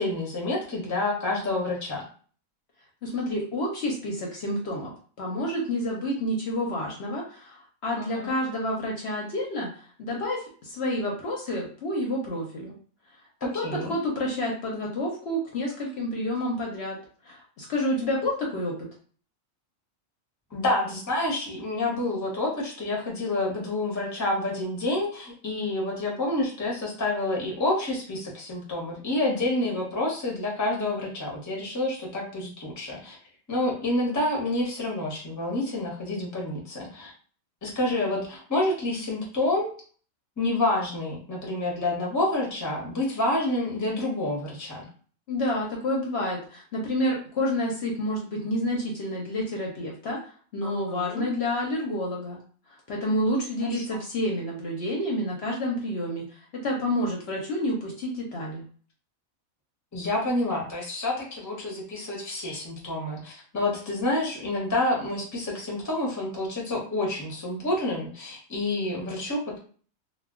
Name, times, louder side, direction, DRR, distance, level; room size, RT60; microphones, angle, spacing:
voice 1, 0.0-2.1 8.0-8.3 13.4-13.9 20.5-33.2 33.5-37.1 37.6-39.8 40.4-44.9 50.6-51.3 53.7-54.0 59.9-69.6, left 2 dB, 20° left, -2 dB, 0.6 m, -28 dB
voice 2, 3.0-4.9 5.2-12.7 13.4-17.0 17.2-18.9 45.3-50.2 50.5-52.4 52.7-58.6, left 1 dB, 60° left, -1 dB, 0.8 m, -29 dB
2.2 x 2.1 x 3.5 m, 0.44 s
omnidirectional pair, 1.4 m